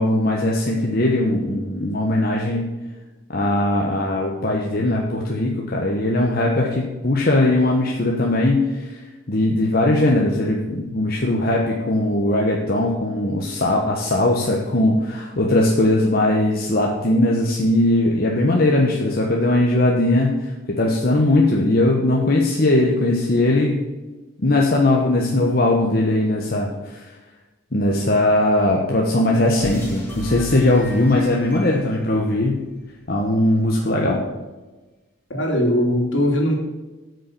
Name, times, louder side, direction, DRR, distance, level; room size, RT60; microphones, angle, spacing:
voice 1, 0.0-2.7 3.3-9.0 9.3-23.8 24.4-27.0 27.7-32.6 33.1-34.2, left 1 dB, 50° left, -1 dB, 1.2 m, -19 dB
sound 1, 29.6-33.0, equal, 10° left, 3.7 m, -36 dB
voice 2, 35.3-36.5, equal, 70° left, 0 dB, 2.8 m, -20 dB
8.6 x 6.6 x 6.8 m, 1.2 s
head